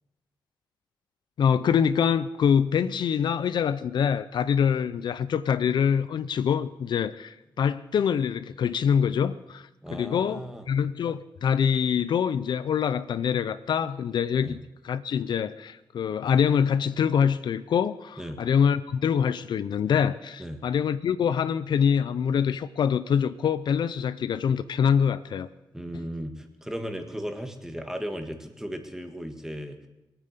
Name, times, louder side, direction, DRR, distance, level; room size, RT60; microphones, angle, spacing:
voice 1, 1.4-10.4 10.7-14.6 14.8-25.5, left 7 dB, 70° left, 0.6 m, -25 dB
voice 2, 9.8-10.7 14.4-14.6 18.2-18.4 20.4-20.6 25.7-29.8, equal, 5° right, 1.8 m, -36 dB
21.0 x 9.1 x 6.8 m
cardioid pair, 95°, 8 cm